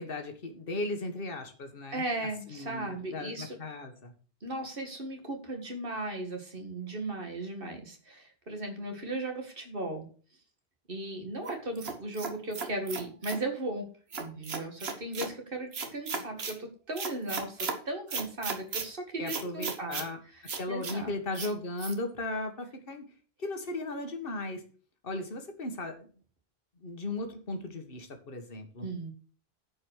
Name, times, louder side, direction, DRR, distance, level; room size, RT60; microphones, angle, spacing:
voice 1, 0.0-2.1 2.5-4.1 19.2-20.2 20.6-23.0 23.4-24.6 25.0-26.1 26.8-28.9, left 2 dB, 60° left, 5 dB, 1.8 m, -36 dB
voice 2, 1.9-3.6 4.4-10.1 10.9-13.8 14.2-20.0 20.3-20.4 20.7-21.1 28.8-29.1, right 2 dB, 60° right, 4 dB, 2.2 m, -37 dB
sound 1, 11.5-13.4 14.1-15.3 15.7-16.6 17.0-17.8 18.1-18.9 19.3-20.1 20.5-21.0 21.3-21.5 21.8-21.9, right 5 dB, 75° right, 1.5 m, -36 dB
10.0 x 5.4 x 6.3 m, 0.40 s
omnidirectional pair, 1.1 m